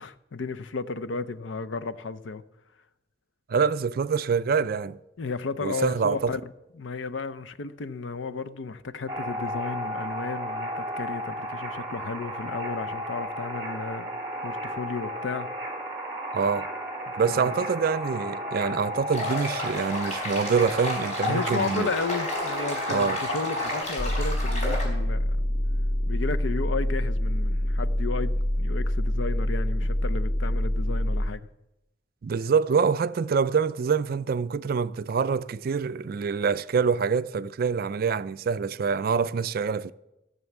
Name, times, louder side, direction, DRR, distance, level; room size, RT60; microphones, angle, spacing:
voice 1, 0.0-2.4 5.2-6.4 6.8-14.2 14.4-15.5 17.3-17.6 21.3-25.4 26.1-31.4, left 4 dB, 80° left, 0.6 m, -33 dB
voice 2, 3.5-5.0 5.6-6.3 16.3-16.7 17.2-21.9 22.9-23.2 32.2-39.9, right 5 dB, 50° right, 0.4 m, -25 dB
sound 1, 9.1-23.8, equal, 15° right, 2.9 m, -34 dB
sound 2, 19.1-24.8, left 1 dB, 40° left, 4.6 m, -32 dB
sound 3, 24.0-31.3, left 1 dB, 25° left, 0.4 m, -26 dB
14.0 x 7.0 x 7.1 m
head